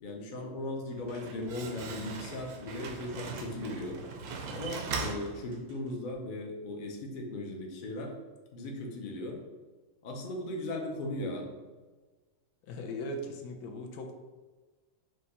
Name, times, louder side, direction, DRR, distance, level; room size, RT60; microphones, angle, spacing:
voice 1, 0.0-4.0 4.5-8.1 8.5-9.4 10.0-11.5, left 1 dB, 55° left, 1 dB, 0.5 m, -37 dB
Slam, 0.9-6.0, right 4 dB, 80° right, 1.1 m, -40 dB
voice 2, 12.7-14.1, left 1 dB, 80° left, 3 dB, 1.1 m, -38 dB
4.9 x 2.2 x 4.1 m, 1.3 s
omnidirectional pair, 1.6 m